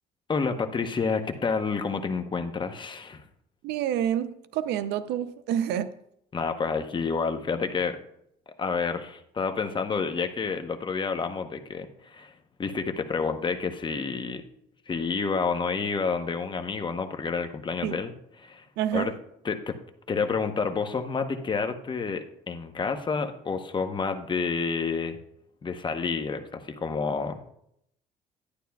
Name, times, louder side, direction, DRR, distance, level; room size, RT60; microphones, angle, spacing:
voice 1, 0.3-3.2 6.3-8.0 8.6-12.3 12.6-14.4 14.9-18.1 18.4-18.7 18.9-19.1 19.4-19.8 20.1-25.2 25.6-27.5, left 5 dB, 30° left, 0.9 m, -29 dB
voice 2, 3.6-5.9 17.8-18.0 18.8-19.1, right 10 dB, 80° right, 0.6 m, -28 dB
11.5 x 9.9 x 2.3 m
cardioid pair, 110°, 17 cm